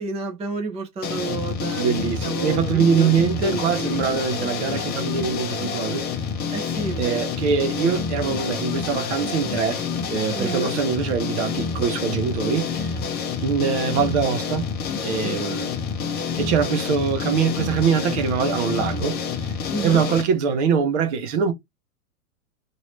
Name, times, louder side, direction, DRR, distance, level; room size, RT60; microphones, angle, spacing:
voice 1, 0.0-3.1 3.4-4.0 6.5-7.3 10.3-10.7 15.2-15.4 19.7-20.0, right 4 dB, 15° right, 0.7 m, -31 dB
sound 1, 1.0-20.2, left 6 dB, 20° left, 0.7 m, -28 dB
voice 2, 1.8-6.1 7.0-9.8 10.1-12.9 13.4-14.7 15.0-15.7 16.4-19.5 19.8-21.5, right 6 dB, 50° right, 0.9 m, -23 dB
3.0 x 2.8 x 3.0 m
hypercardioid pair, 110°, 44 cm